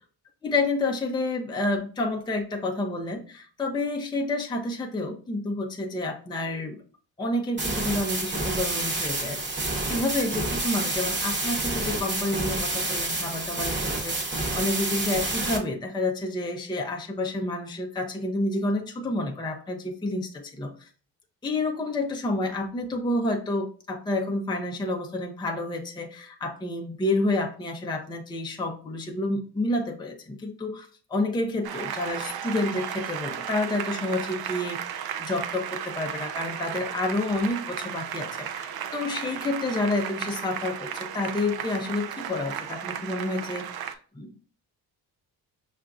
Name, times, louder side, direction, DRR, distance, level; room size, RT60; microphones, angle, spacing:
voice 1, 0.4-6.8 7.2-9.4 9.9-20.7 21.4-34.8 35.2-44.5, left 2 dB, 10° left, 2 dB, 0.5 m, -29 dB
sound 1, 7.6-15.6, right 2 dB, 25° right, 1.0 m, -29 dB
Applause, 31.6-43.9, right 9 dB, 65° right, 0.5 m, -35 dB
5.5 x 2.5 x 2.3 m, 0.41 s
cardioid pair, 65°, 42 cm